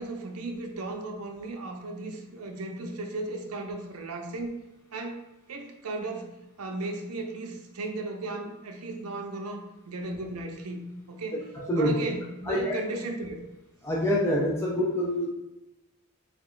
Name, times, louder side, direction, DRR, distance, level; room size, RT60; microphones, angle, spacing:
voice 1, 0.0-4.6 4.9-5.2 5.5-11.4 11.7-13.4, right 2 dB, 80° right, 3 dB, 0.6 m, -35 dB
voice 2, 11.6-11.9 12.5-12.8 13.8-15.3, equal, 10° left, -4 dB, 0.5 m, -26 dB
3.4 x 2.3 x 3.7 m, 0.96 s
head